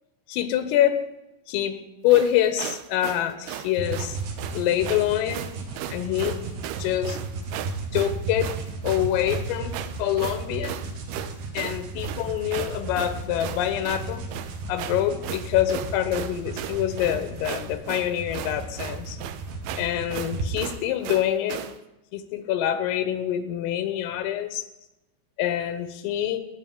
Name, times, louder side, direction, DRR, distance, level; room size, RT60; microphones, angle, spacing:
voice 1, 0.3-1.0 1.5-1.8 2.0-4.2 4.6-5.4 5.9-6.4 6.8-7.2 7.9-8.5 8.8-10.8 11.5-14.2 14.7-19.2 19.8-21.6 22.1-24.6 25.4-26.4, left 12 dB, 85° left, 10 dB, 3.8 m, -25 dB
sound 1, 2.1-21.8, right 11 dB, 85° right, 3.1 m, -36 dB
sound 2, 3.8-20.5, right 3 dB, 55° right, 2.7 m, -35 dB
19.5 x 7.0 x 9.5 m, 0.97 s
omnidirectional pair, 5.8 m